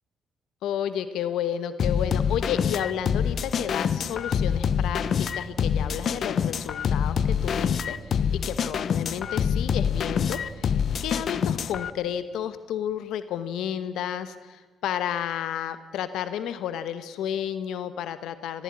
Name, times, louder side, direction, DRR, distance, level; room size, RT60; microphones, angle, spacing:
voice 1, 0.6-18.6, left 9 dB, 85° left, 13 dB, 1.1 m, -32 dB
sound 1, 1.8-11.9, left 7 dB, 55° left, 0.8 m, -26 dB
19.0 x 14.5 x 9.9 m, 1.4 s
cardioid pair, 90°, 0 cm